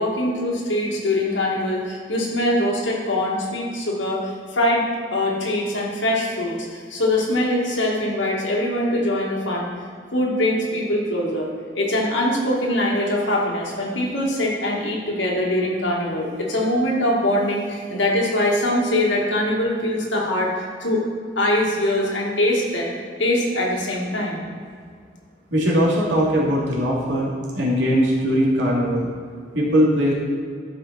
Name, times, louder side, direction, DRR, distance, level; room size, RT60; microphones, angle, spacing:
voice 1, 0.0-4.8 5.1-9.7 10.1-21.0 21.4-22.9 23.2-24.4, left 1 dB, 80° left, -2 dB, 2.1 m, -23 dB
voice 2, 25.5-29.1 29.5-30.1, equal, 80° right, -5 dB, 2.7 m, -20 dB
13.5 x 5.5 x 4.2 m, 2.1 s
head